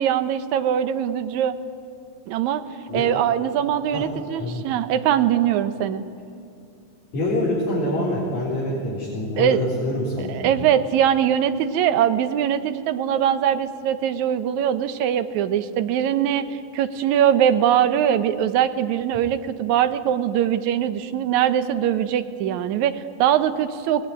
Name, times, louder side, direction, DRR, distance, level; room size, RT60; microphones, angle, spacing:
voice 1, 0.0-1.6 2.3-2.6 2.9-6.0 9.4-9.6 10.3-24.1, right 10 dB, 70° right, 9 dB, 2.0 m, -22 dB
voice 2, 3.9-4.7 7.1-10.5, left 1 dB, 50° left, -5 dB, 5.1 m, -26 dB
24.0 x 19.5 x 9.9 m, 2.5 s
omnidirectional pair, 4.2 m